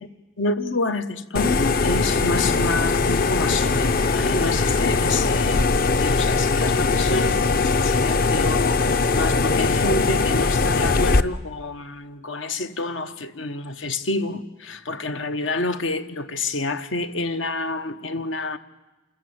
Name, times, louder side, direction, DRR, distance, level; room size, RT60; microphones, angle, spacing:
voice 1, 0.4-18.6, left 2 dB, 90° left, 1.2 m, -28 dB
sound 1, 1.4-11.2, left 4 dB, 50° left, 0.6 m, -21 dB
27.5 x 14.5 x 8.8 m
head